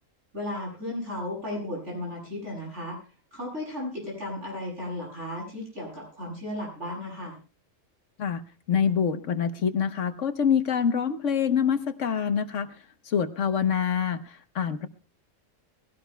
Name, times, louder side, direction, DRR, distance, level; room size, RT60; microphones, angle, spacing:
voice 1, 0.3-3.0 3.3-7.4, left 1 dB, 60° right, -3 dB, 8.5 m, -35 dB
voice 2, 8.7-12.7 13.1-14.9, left 7 dB, 70° left, 10 dB, 1.3 m, -25 dB
22.0 x 17.0 x 2.2 m, 0.35 s
omnidirectional pair, 1.3 m